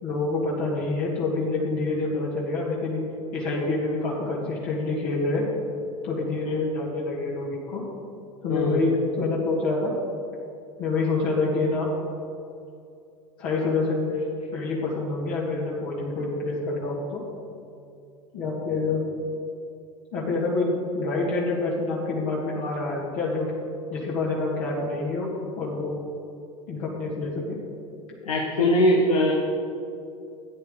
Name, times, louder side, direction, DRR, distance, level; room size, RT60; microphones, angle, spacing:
voice 1, 0.0-3.0 3.3-5.5 6.0-7.8 8.4-9.9 10.8-11.9 13.4-17.2 18.3-19.1 20.1-23.5 23.9-25.3 25.6-26.0 26.7-27.6, left 3 dB, 60° left, -4 dB, 2.2 m, -27 dB
voice 2, 8.5-8.8 28.2-29.3, left 1 dB, 85° left, -1 dB, 1.2 m, -21 dB
13.5 x 9.0 x 3.9 m, 2.5 s
hypercardioid pair, 80°, 18 cm